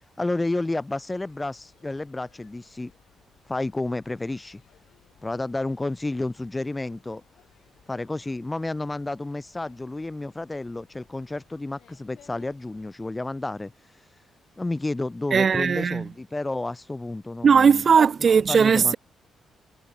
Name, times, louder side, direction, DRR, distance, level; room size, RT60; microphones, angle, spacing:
voice 1, 0.2-2.9 3.5-4.6 5.2-7.2 7.9-13.7 14.6-17.8 18.5-18.9, left 2 dB, 15° left, 0.4 m, -31 dB
sound 1, 0.9-12.9, left 11 dB, 75° left, 5.2 m, -61 dB
voice 2, 15.3-16.1 17.4-19.0, right 6 dB, 45° right, 0.4 m, -18 dB
cardioid pair, 110°, 0 cm